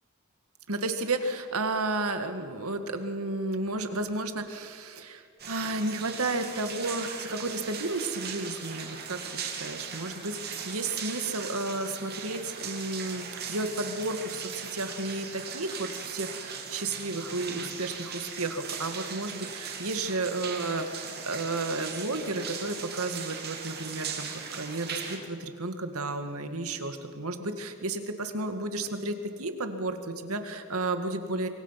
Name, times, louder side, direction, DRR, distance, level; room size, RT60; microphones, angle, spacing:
voice 1, 0.7-31.5, right 2 dB, 75° right, 7 dB, 2.0 m, -32 dB
sound 1, 5.4-25.2, right 6 dB, 45° right, 2.8 m, -39 dB
26.5 x 24.0 x 5.9 m, 2.2 s
head